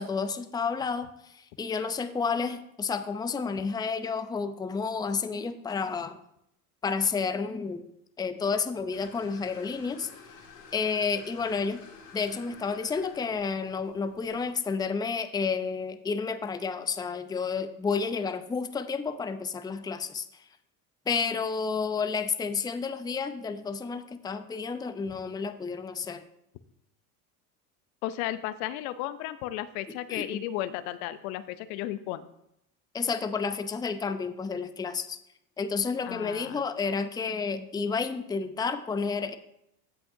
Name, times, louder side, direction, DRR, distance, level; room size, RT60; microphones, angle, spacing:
voice 1, 0.0-6.2 6.8-7.9 8.2-10.1 10.7-11.8 12.1-20.4 21.1-26.2 30.1-30.4 32.9-35.2 35.6-39.3, left 5 dB, 10° left, 10 dB, 0.6 m, -31 dB
sound 1, 8.9-14.5, left 5 dB, 90° left, 2.3 m, -51 dB
voice 2, 28.0-32.2 36.1-36.6, left 13 dB, 65° left, 14 dB, 0.7 m, -34 dB
16.0 x 5.5 x 2.7 m, 0.78 s
hypercardioid pair, 85°, 45 cm